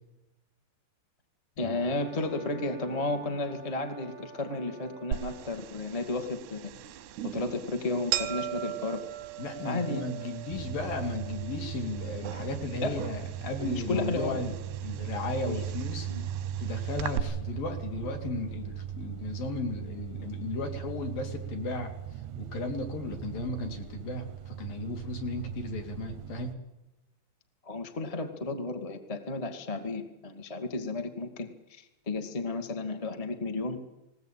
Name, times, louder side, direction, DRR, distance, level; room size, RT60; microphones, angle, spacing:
voice 1, 1.6-6.7 7.2-9.0 9.6-10.0 12.8-13.1 13.6-14.4 15.4-15.6 16.1-16.3 27.6-33.8, left 2 dB, 25° left, 6 dB, 0.8 m, -33 dB
Brass instrument, 1.7-5.6, right 5 dB, 50° right, 0.9 m, -50 dB
sound 1, 5.1-17.2, right 12 dB, 90° right, 3.1 m, -39 dB
voice 2, 9.4-14.5 14.8-16.1 16.6-21.9 22.4-26.6, left 2 dB, 60° left, 4 dB, 4.6 m, -35 dB
sound 2, 10.5-26.5, right 10 dB, 75° right, 1.8 m, -38 dB
20.5 x 19.0 x 9.1 m, 0.94 s
omnidirectional pair, 4.5 m